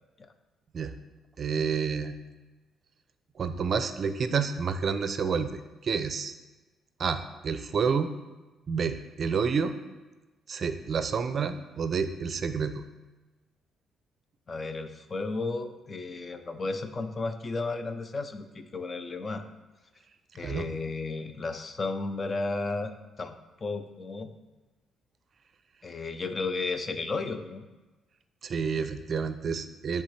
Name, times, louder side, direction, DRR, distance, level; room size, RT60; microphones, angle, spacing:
voice 1, 1.4-2.2 3.4-6.3 7.0-8.1 8.7-9.7 10.5-12.8 20.4-20.7 28.4-30.0, right 6 dB, 50° right, 10 dB, 0.4 m, -29 dB
voice 2, 14.5-19.4 20.3-23.3 23.6-24.3 25.8-27.7, left 3 dB, 35° left, 9 dB, 0.5 m, -33 dB
10.0 x 3.5 x 3.2 m, 1.2 s
cardioid pair, 90°, 0 cm